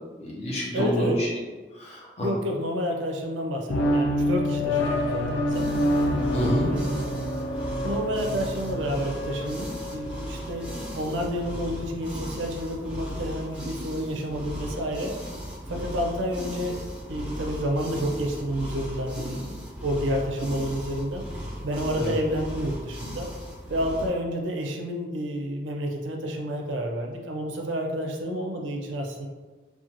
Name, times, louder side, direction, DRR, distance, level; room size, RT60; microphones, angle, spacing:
voice 1, 0.2-1.3 1.7-2.3 6.3-6.7 22.0-22.1, equal, 35° left, -5 dB, 0.7 m, -27 dB
voice 2, 0.7-1.2 2.2-5.7 6.1-6.2 6.4-7.1 7.8-10.7 11.0-15.1 15.7-16.8 17.1-19.5 19.8-23.3 23.7-29.3, equal, 85° right, 1 dB, 0.4 m, -30 dB
sound 1, 3.7-11.0, equal, 90° left, 0.4 m, -27 dB
sound 2, 5.5-24.1, equal, 5° right, 0.6 m, -37 dB
2.5 x 2.2 x 2.8 m, 1.3 s
head